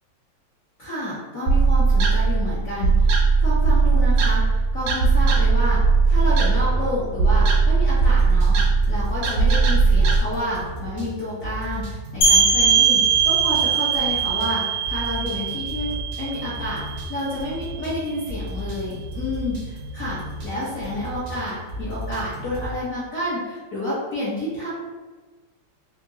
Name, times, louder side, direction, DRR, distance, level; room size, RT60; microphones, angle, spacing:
voice 1, 0.8-3.1 3.4-5.8 6.1-24.7, left 1 dB, 55° left, -9 dB, 0.9 m, -30 dB
sound 1, 1.5-10.2, right 4 dB, 85° right, 1.6 m, -18 dB
sound 2, 5.0-22.8, equal, 65° right, 0.8 m, -34 dB
sound 3, 12.2-17.7, right 6 dB, 80° left, 1.5 m, -21 dB
3.8 x 2.8 x 2.6 m, 1.3 s
omnidirectional pair, 2.4 m